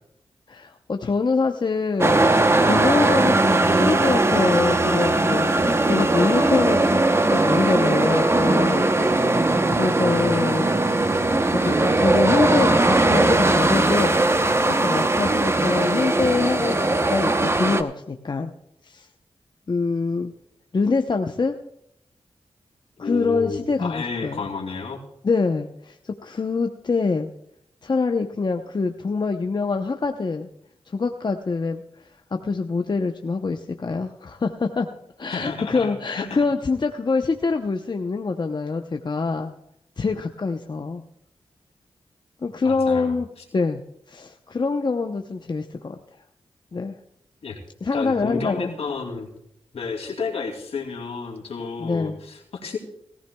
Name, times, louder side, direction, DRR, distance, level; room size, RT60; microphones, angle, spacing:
voice 1, 0.5-9.2 9.7-10.7 11.4-14.3 14.7-18.5 18.8-19.1 19.7-20.3 20.7-21.5 23.0-24.4 25.2-27.3 27.8-30.5 30.9-31.8 32.3-34.9 35.2-39.5 40.0-41.0 42.4-43.3 43.5-43.8 44.1-46.0 46.7-47.0 47.8-48.7 51.8-52.2, left 4 dB, 45° left, 4 dB, 0.8 m, -25 dB
sound 1, 2.0-17.8, right 2 dB, 25° right, 0.9 m, -19 dB
voice 2, 23.0-25.0 35.3-36.4 42.6-43.2 47.4-47.6 47.9-49.3 49.7-52.8, left 4 dB, 80° left, 1 dB, 2.7 m, -31 dB
18.5 x 14.5 x 2.3 m, 0.75 s
cardioid pair, 55°, 10 cm